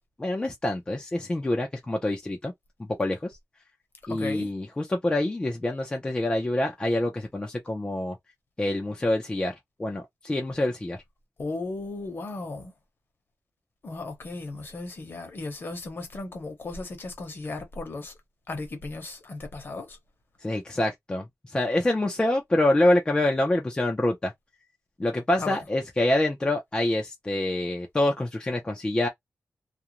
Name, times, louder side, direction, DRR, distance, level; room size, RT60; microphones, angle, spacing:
voice 1, 0.2-2.5 2.8-3.4 4.1-8.2 8.6-11.0 20.4-24.3 25.0-29.1, left 1 dB, 15° left, 0.5 m, -26 dB
voice 2, 4.1-4.5 11.4-12.7 13.8-18.1 18.5-20.0 25.4-25.6, left 3 dB, 45° left, 0.9 m, -36 dB
2.5 x 2.1 x 2.8 m
wide cardioid pair, 175°, 5 cm